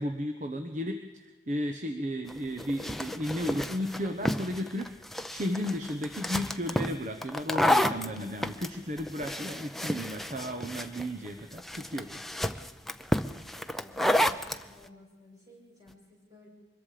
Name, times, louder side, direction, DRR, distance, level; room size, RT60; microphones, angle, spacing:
voice 1, 0.0-4.9 5.3-12.2, equal, 45° right, 6 dB, 1.1 m, -34 dB
sound 1, 2.3-14.6, left 1 dB, ahead, 0.6 m, -31 dB
voice 2, 13.1-16.5, left 2 dB, 20° right, -4 dB, 7.7 m, -55 dB
24.0 x 21.5 x 5.1 m, 1.3 s
head